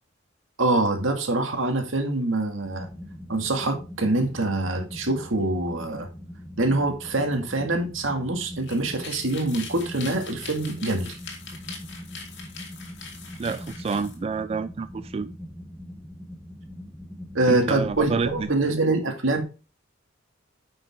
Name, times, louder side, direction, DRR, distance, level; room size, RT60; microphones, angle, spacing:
voice 1, 0.6-2.9 3.3-6.1 6.6-11.2 17.3-19.4, right 2 dB, 80° right, 2.0 m, -25 dB
sound 1, 2.6-18.5, equal, 5° right, 0.9 m, -42 dB
sound 2, 8.5-14.2, left 5 dB, 60° left, 2.5 m, -42 dB
voice 2, 13.4-15.3 17.5-18.5, right 4 dB, 30° right, 0.3 m, -28 dB
9.8 x 5.5 x 3.6 m
head